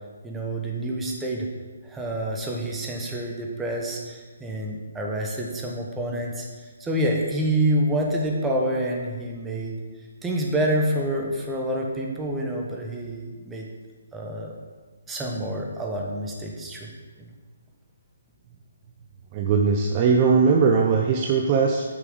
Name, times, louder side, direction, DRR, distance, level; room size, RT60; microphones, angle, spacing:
voice 1, 0.2-1.5 1.8-6.5 6.8-9.8 10.2-13.7 14.1-14.5 15.1-16.9 17.2-17.3, right 1 dB, 10° right, -1 dB, 1.2 m, -27 dB
voice 2, 19.3-21.8, right 5 dB, 30° right, 1 dB, 0.6 m, -20 dB
9.2 x 6.0 x 3.9 m, 1.4 s
figure-of-eight pair, 145°, 0 cm